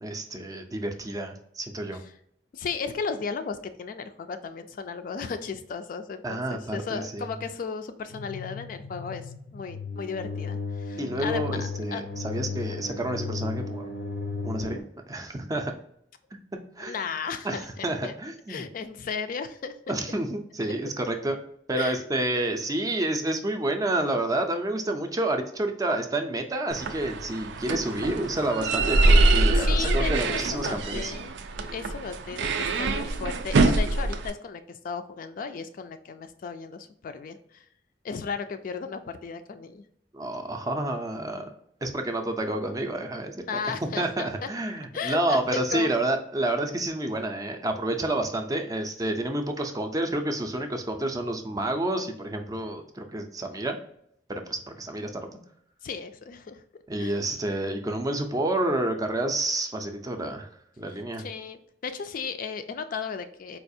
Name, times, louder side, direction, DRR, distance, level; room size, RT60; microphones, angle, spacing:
voice 1, 0.0-2.0 6.2-7.4 11.0-13.9 14.4-14.8 15.1-15.7 16.8-16.9 17.4-18.6 19.9-21.4 21.7-31.1 40.1-41.5 41.8-43.6 44.0-53.8 54.3-55.2 56.9-60.5 60.8-61.3, right 1 dB, 20° right, 5 dB, 0.4 m, -29 dB
voice 2, 2.5-12.0 12.6-12.7 16.8-18.1 18.5-19.9 21.7-22.0 29.5-31.3 31.7-37.6 38.0-39.8 43.5-44.5 44.9-45.9 55.8-56.6 57.0-57.2 61.2-63.6, left 5 dB, 50° left, 9 dB, 0.3 m, -35 dB
sound 1, 8.1-14.8, left 4 dB, 90° left, 0.6 m, -35 dB
sound 2, 26.7-34.3, right 2 dB, 85° right, 0.4 m, -24 dB
4.3 x 2.4 x 2.6 m, 0.70 s
head